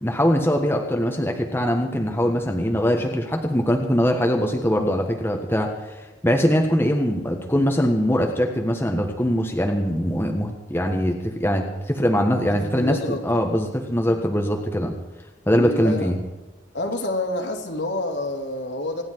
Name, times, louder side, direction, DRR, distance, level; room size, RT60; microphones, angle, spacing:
voice 1, 0.0-14.9 15.5-16.2, equal, 10° left, 2 dB, 1.4 m, -22 dB
voice 2, 12.5-13.4 15.6-16.1 16.7-19.0, left 1 dB, 65° left, 2 dB, 2.8 m, -28 dB
26.5 x 10.0 x 4.7 m, 1.2 s
head